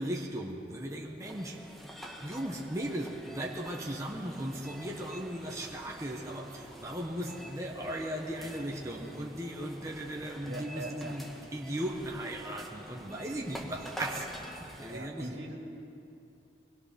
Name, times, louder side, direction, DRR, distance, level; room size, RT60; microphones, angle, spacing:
voice 1, 0.0-1.9 2.2-14.4 14.8-15.4, right 1 dB, 15° right, -1 dB, 1.5 m, -37 dB
sound 1, 1.2-15.0, equal, ahead, 1.6 m, -47 dB
voice 2, 10.5-11.2 14.9-15.6, right 1 dB, 75° right, 1 dB, 2.8 m, -41 dB
24.0 x 21.5 x 6.1 m, 2.7 s
head